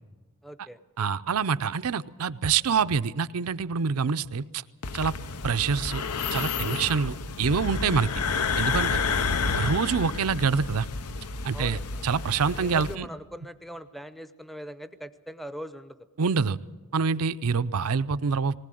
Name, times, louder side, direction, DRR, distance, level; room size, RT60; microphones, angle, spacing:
voice 1, 0.4-0.8 11.5-12.0 12.5-16.0, equal, ahead, 12 dB, 0.6 m, -41 dB
voice 2, 1.0-4.6 4.9-5.1 5.4-6.0 6.3-8.1 8.6-9.0 9.6-10.9 11.4-13.1 16.2-16.6 16.9-18.5, right 5 dB, 75° right, 15 dB, 0.6 m, -26 dB
sound 1, 4.8-12.9, left 5 dB, 85° left, 0.8 m, -30 dB
19.5 x 19.5 x 7.7 m, 1.3 s
head